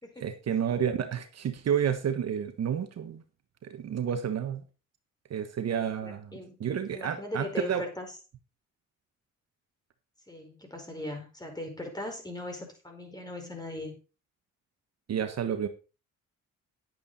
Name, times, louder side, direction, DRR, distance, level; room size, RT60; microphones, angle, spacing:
voice 1, 0.2-3.2 3.6-4.6 5.3-7.8 15.1-15.7, right 8 dB, 55° right, 8 dB, 1.4 m, -30 dB
voice 2, 6.0-6.6 6.9-8.1 10.3-14.0, left 1 dB, 15° left, 3 dB, 4.9 m, -39 dB
10.5 x 8.8 x 4.2 m, 0.32 s
cardioid pair, 90°, 30 cm